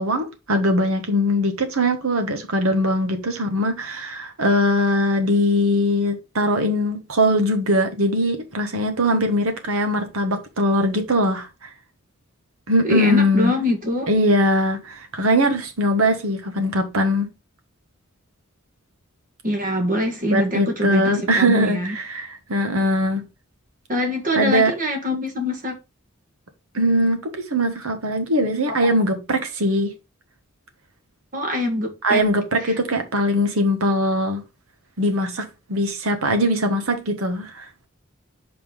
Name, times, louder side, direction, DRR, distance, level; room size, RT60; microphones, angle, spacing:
voice 1, 0.0-11.7 12.7-13.5 14.1-17.3 20.3-23.2 24.3-24.7 26.7-29.9 32.0-34.4 35.0-37.7, equal, 90° right, 1.5 m, -21 dB
voice 2, 12.8-14.1 19.4-22.0 23.9-25.8 28.7-28.8 31.3-32.2 32.6-32.7, left 1 dB, 40° right, 1.8 m, -24 dB
5.6 x 4.2 x 5.1 m
head